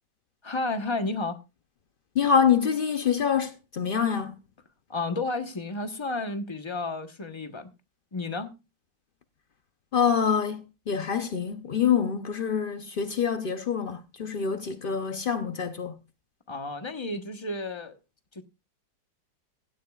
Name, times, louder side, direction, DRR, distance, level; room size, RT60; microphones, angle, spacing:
voice 1, 0.4-1.4 4.9-7.7 8.1-8.5 16.5-18.0 18.3-18.4, left 2 dB, 20° left, 0.9 m, -32 dB
voice 2, 2.2-4.4 9.9-16.0, left 7 dB, 75° left, 0.4 m, -26 dB
16.5 x 12.5 x 2.4 m
omnidirectional pair, 2.0 m